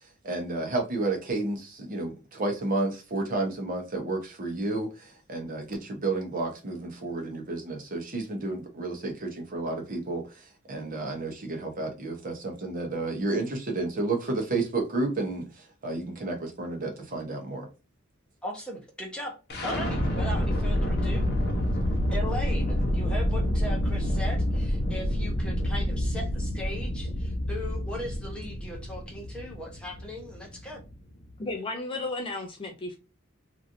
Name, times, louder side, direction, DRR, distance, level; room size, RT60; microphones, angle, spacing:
voice 1, 0.2-17.7, right 2 dB, 40° right, 0.9 m, -31 dB
voice 2, 18.4-19.4 19.6-21.3 22.1-30.8, left 1 dB, 5° left, 0.9 m, -38 dB
sound 1, 19.5-31.4, equal, 50° left, 0.9 m, -28 dB
voice 3, 31.4-33.0, left 2 dB, 25° left, 0.4 m, -33 dB
3.1 x 2.5 x 2.6 m
head